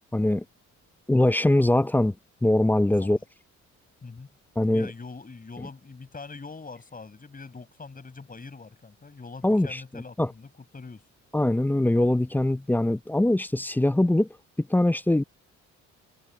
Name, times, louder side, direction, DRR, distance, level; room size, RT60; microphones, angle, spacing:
voice 1, 0.1-0.4 1.1-2.1 2.4-3.2 4.6-4.9 9.4-10.3 11.3-14.3 14.6-15.2, left 1 dB, 5° left, 0.5 m, -22 dB
voice 2, 4.7-11.0, left 4 dB, 30° left, 6.1 m, -43 dB
cardioid pair, 90°, 30 cm